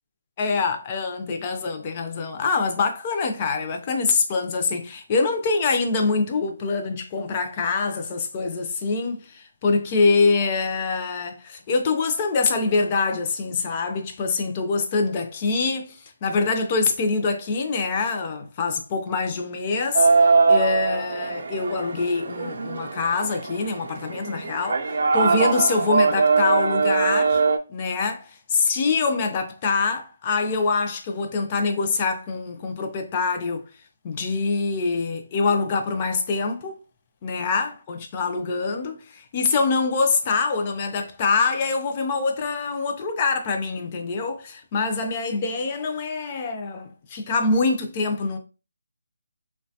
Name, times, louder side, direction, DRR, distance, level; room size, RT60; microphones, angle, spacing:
voice 1, 0.4-27.4 27.7-33.7 34.0-36.8 37.2-48.4, left 4 dB, 25° left, 0.4 m, -25 dB
sound 1, 20.0-27.6, right 4 dB, 60° right, 0.4 m, -21 dB
3.0 x 2.2 x 2.7 m
hypercardioid pair, 170°, 0 cm